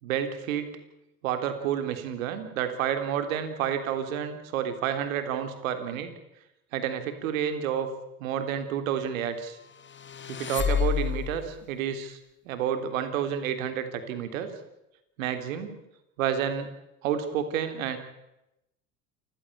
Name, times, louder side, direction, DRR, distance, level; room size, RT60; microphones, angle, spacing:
voice 1, 0.0-0.8 1.2-6.1 6.7-7.9 8.2-9.6 10.3-12.2 12.5-14.5 15.2-15.8 16.2-16.7 17.0-18.0, right 9 dB, 75° right, 8 dB, 3.5 m, -30 dB
sound 1, 9.7-11.5, left 8 dB, 30° left, 1.4 m, -29 dB
28.0 x 16.0 x 8.6 m, 0.91 s
hypercardioid pair, 75°, 41 cm